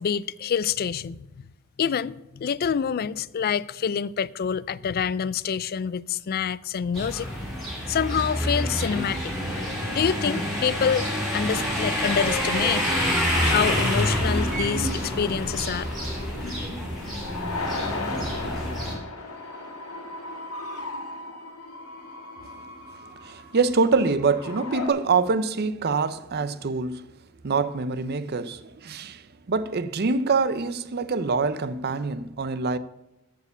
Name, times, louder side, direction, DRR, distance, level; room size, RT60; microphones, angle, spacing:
voice 1, 0.0-1.4 1.8-7.3 7.9-9.3 9.9-11.1 11.3-12.8 13.4-15.9, left 7 dB, 45° left, 0.3 m, -26 dB
sound 1, 6.9-18.9, equal, ahead, 3.0 m, -27 dB
sound 2, 13.3-24.9, left 2 dB, 85° left, 2.2 m, -35 dB
voice 2, 23.2-27.0 27.4-29.2 29.5-32.8, right 4 dB, 45° right, 0.5 m, -25 dB
13.5 x 4.8 x 7.9 m
head